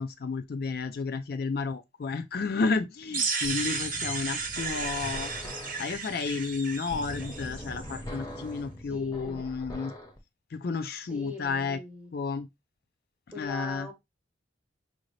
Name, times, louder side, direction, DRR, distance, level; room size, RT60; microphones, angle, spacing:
voice 1, 0.0-5.3 5.8-9.9 10.5-11.8 12.1-12.5 13.4-13.9, left 4 dB, 50° left, 0.3 m, -32 dB
sound 1, 3.1-8.0, right 4 dB, 45° right, 0.8 m, -34 dB
sound 2, 3.4-10.2, left 1 dB, 20° left, 0.7 m, -42 dB
voice 2, 8.8-9.4 11.1-12.1 13.3-13.9, left 3 dB, 5° right, 0.9 m, -41 dB
4.8 x 2.6 x 3.1 m
head